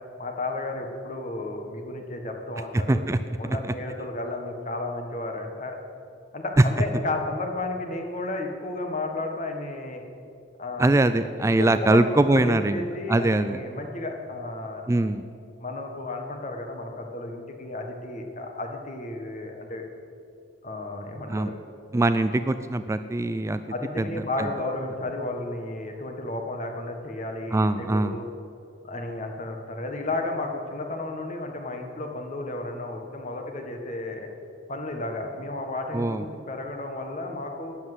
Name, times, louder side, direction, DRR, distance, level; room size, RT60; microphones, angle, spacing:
voice 1, 0.2-3.0 3.4-5.8 6.3-10.0 10.6-11.0 11.6-14.9 15.6-19.8 20.6-21.6 23.7-28.3 28.8-34.3 34.7-37.8, left 2 dB, 40° left, 4 dB, 1.6 m, -33 dB
voice 2, 2.7-3.2 6.6-6.7 10.8-13.6 14.9-15.2 21.3-21.5 21.9-23.6 24.0-24.1 27.5-28.2 35.9-36.2, right 2 dB, 15° right, 10 dB, 0.3 m, -22 dB
13.0 x 10.0 x 8.0 m, 2.5 s
head